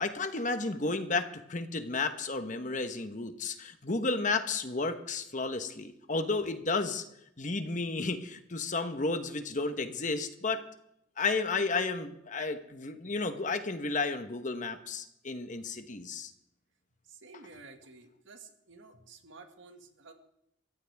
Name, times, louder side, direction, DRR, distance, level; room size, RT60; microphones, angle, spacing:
voice 1, 0.0-7.0 7.4-10.7 11.2-16.3, left 3 dB, 40° left, 8 dB, 1.1 m, -32 dB
voice 2, 17.1-20.1, right 4 dB, 75° right, 4 dB, 2.0 m, -52 dB
24.0 x 15.0 x 3.6 m, 0.78 s
head